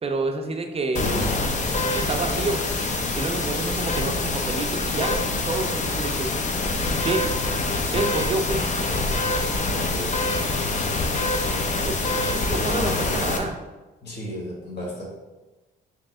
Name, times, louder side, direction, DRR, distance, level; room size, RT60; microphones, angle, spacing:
voice 1, 0.0-1.3 2.0-2.6 3.1-6.3 7.0-7.2 7.9-8.6 11.8-12.0 12.3-13.6, right 3 dB, 30° right, 4 dB, 0.5 m, -28 dB
sound 1, 0.9-13.4, left 2 dB, 40° left, 0.6 m, -25 dB
voice 2, 9.6-10.9 14.0-15.0, equal, 55° left, -3 dB, 1.3 m, -35 dB
3.2 x 3.0 x 3.6 m, 1.1 s
cardioid pair, 90°, 20 cm